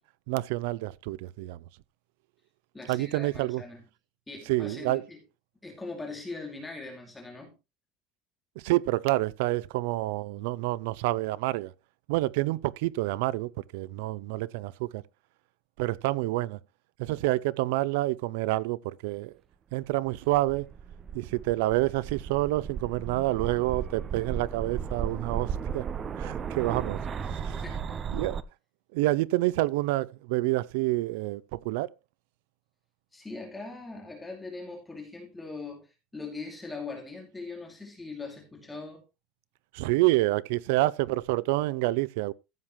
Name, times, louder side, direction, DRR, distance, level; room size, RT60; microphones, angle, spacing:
voice 1, 0.3-1.6 2.9-3.6 4.5-5.0 8.6-11.7 12.1-15.0 15.8-16.6 17.0-19.3 19.7-20.7 21.1-25.9 26.2-27.6 28.1-28.4 28.9-31.9 39.7-42.3, right 18 dB, 85° right, 0.5 m, -28 dB
voice 2, 2.7-3.8 4.3-5.2 5.6-7.5 27.5-28.2 33.1-39.0, left 3 dB, 10° left, 2.4 m, -41 dB
sound 1, 20.1-28.4, right 7 dB, 20° right, 0.5 m, -35 dB
14.5 x 7.3 x 3.1 m
cardioid pair, 180°, 0 cm